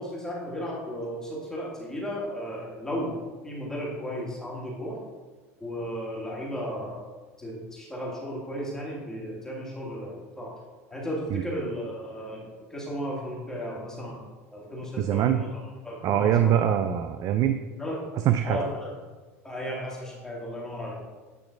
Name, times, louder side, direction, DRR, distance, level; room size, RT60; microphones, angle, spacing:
voice 1, 0.0-3.1 3.4-5.0 5.6-7.0 7.4-10.5 10.9-14.2 14.5-15.5 15.8-16.5 17.8-18.0 18.4-18.9 19.4-21.0, equal, 5° left, -5 dB, 1.7 m, -34 dB
voice 2, 15.0-15.4 16.0-17.6 18.3-18.6, right 10 dB, 45° right, 8 dB, 0.3 m, -23 dB
8.4 x 3.0 x 3.9 m, 1.3 s
hypercardioid pair, 90°, 8 cm